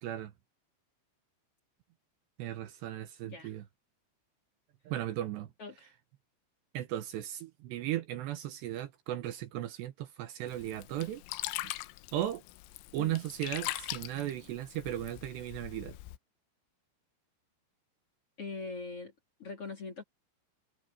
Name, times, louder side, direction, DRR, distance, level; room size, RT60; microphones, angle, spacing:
voice 1, 0.0-0.3 2.4-3.6 4.9-5.5 6.7-11.2 11.6-11.7 12.1-12.4 12.9-16.0, right 13 dB, 70° right, 3.0 m, -36 dB
voice 2, 5.6-5.9 13.0-13.2 18.4-19.1 19.4-20.0, left 4 dB, 35° left, 3.1 m, -42 dB
Sink (filling or washing), 10.5-16.2, left 18 dB, 90° left, 3.3 m, -42 dB
omnidirectional pair, 5.5 m